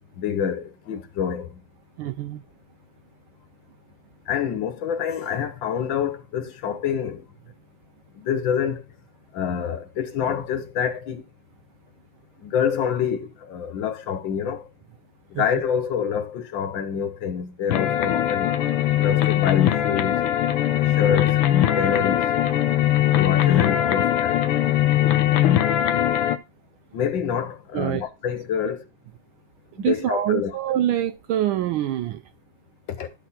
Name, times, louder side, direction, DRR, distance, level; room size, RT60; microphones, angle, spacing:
voice 1, 0.2-1.5 4.3-7.2 8.2-8.8 9.3-11.2 12.4-14.7 15.3-18.5 19.0-20.2 20.7-21.4 21.8-22.2 23.1-24.4 26.9-28.8 29.8-30.5 33.0-33.1, left 8 dB, 65° left, 1.7 m, -26 dB
voice 2, 2.0-2.4 15.4-15.5 27.7-28.0 29.8-32.2, right 11 dB, 80° right, 1.4 m, -25 dB
sound 1, 17.7-26.4, left 12 dB, 85° left, 1.6 m, -20 dB
12.5 x 4.2 x 4.2 m
omnidirectional pair, 2.3 m